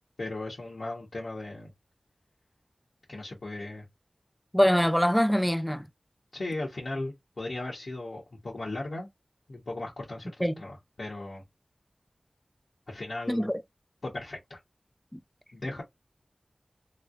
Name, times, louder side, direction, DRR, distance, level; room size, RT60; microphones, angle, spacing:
voice 1, 0.2-1.7 3.1-3.9 6.3-9.1 9.5-11.4 12.9-13.5 14.0-14.6 15.5-15.8, left 2 dB, 80° left, 1.3 m, -37 dB
voice 2, 4.5-5.9 10.4-10.5 13.3-13.6 15.1-15.2, equal, 5° left, 0.5 m, -24 dB
3.5 x 3.3 x 2.5 m
wide cardioid pair, 50°, 0 cm